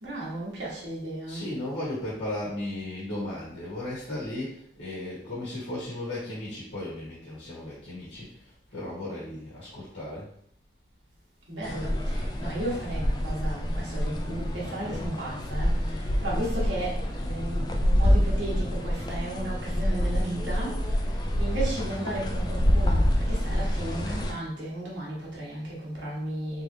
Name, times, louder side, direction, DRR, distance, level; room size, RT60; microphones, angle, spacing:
voice 1, 0.0-1.4 11.5-21.0 21.4-26.6, right 1 dB, 75° right, -5 dB, 1.4 m, -35 dB
voice 2, 1.3-10.3, left 1 dB, 80° left, -8 dB, 1.4 m, -35 dB
sound 1, 11.6-24.3, equal, 20° left, 0.3 m, -27 dB
3.5 x 3.1 x 2.7 m, 0.66 s
head